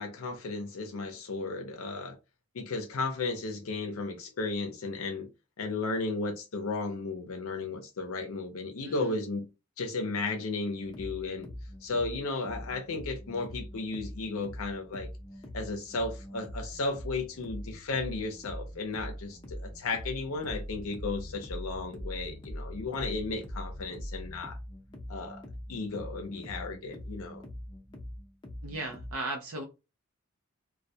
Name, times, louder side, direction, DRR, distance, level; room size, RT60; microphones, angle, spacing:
voice 1, 0.0-2.2 2.5-5.3 5.6-9.5 9.8-11.5 11.8-15.1 15.5-24.6 25.1-25.4 25.7-27.4, left 3 dB, 75° left, 0.6 m, -34 dB
sound 1, 10.8-29.1, equal, 20° left, 0.5 m, -42 dB
voice 2, 28.6-29.6, right 2 dB, 75° right, 0.5 m, -36 dB
2.2 x 2.1 x 2.6 m
head